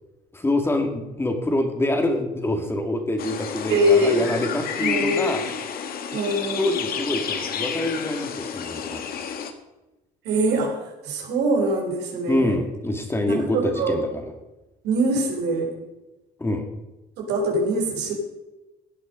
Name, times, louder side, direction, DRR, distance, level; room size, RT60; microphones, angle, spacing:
voice 1, 0.3-5.4 6.6-9.2 12.3-14.2 16.4-16.7, left 1 dB, 15° left, 4 dB, 2.2 m, -25 dB
sound 1, 3.2-9.5, left 7 dB, 60° left, 1.6 m, -30 dB
voice 2, 3.7-4.3 4.8-5.4 6.1-6.8 10.2-10.8 11.0-12.5 13.3-14.0 14.8-15.7 17.2-18.1, right 1 dB, 80° right, 1 dB, 4.2 m, -23 dB
16.5 x 9.1 x 5.2 m, 1.0 s
cardioid pair, 110°, 17 cm